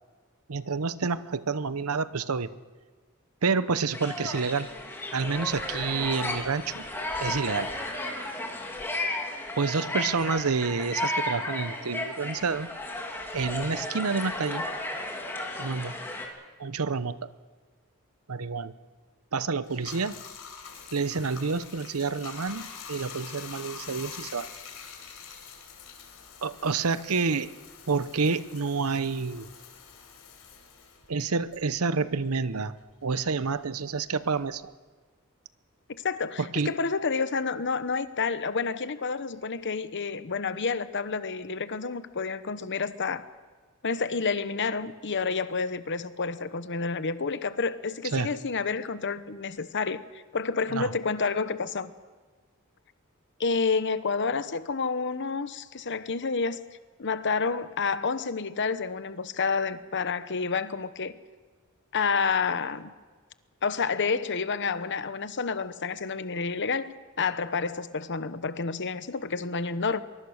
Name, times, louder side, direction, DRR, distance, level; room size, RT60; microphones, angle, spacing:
voice 1, 0.5-2.5 3.4-4.7 5.1-6.9 7.2-7.7 9.6-12.7 13.3-14.7 15.6-15.9 16.6-17.2 18.3-18.7 19.3-20.2 20.9-24.5 26.4-27.5 27.9-29.5 31.1-32.7 33.0-34.7 36.4-36.8 48.1-48.3 50.7-50.9, right 4 dB, 85° right, 0.9 m, -28 dB
sound 1, 3.9-16.3, left 1 dB, 10° left, 3.1 m, -34 dB
Bathtub (filling or washing), 19.6-32.5 32.8-34.6, left 6 dB, 80° left, 4.2 m, -46 dB
voice 2, 36.0-43.3 43.8-51.9 53.4-56.7 57.0-61.1 61.9-62.9 63.6-70.0, left 4 dB, 55° left, 1.0 m, -29 dB
23.5 x 21.5 x 6.5 m
head